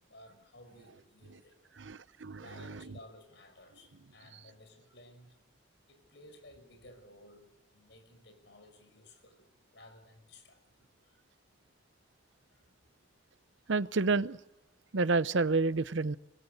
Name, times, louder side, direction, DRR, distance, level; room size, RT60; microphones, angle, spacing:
voice 1, 0.1-1.6 2.4-5.4 5.9-10.6 11.0-11.2 12.5-12.6, left 1 dB, 70° left, 7 dB, 6.0 m, -56 dB
voice 2, 1.8-3.0 13.7-14.4 14.9-16.2, right 3 dB, 90° right, 16 dB, 0.8 m, -30 dB
25.5 x 21.5 x 6.7 m, 0.90 s
head